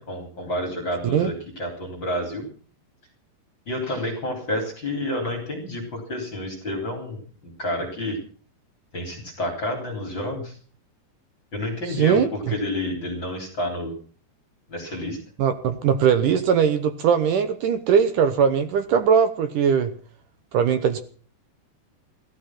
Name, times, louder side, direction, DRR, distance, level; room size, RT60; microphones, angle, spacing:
voice 1, 0.0-2.5 3.7-7.2 7.4-8.2 8.9-10.6 11.5-13.9 14.7-15.2, left 1 dB, 30° left, 2 dB, 3.7 m, -29 dB
voice 2, 11.9-12.5 15.4-19.9 20.5-21.0, right 7 dB, 70° right, 10 dB, 2.0 m, -20 dB
16.5 x 13.5 x 6.0 m, 0.42 s
omnidirectional pair, 5.0 m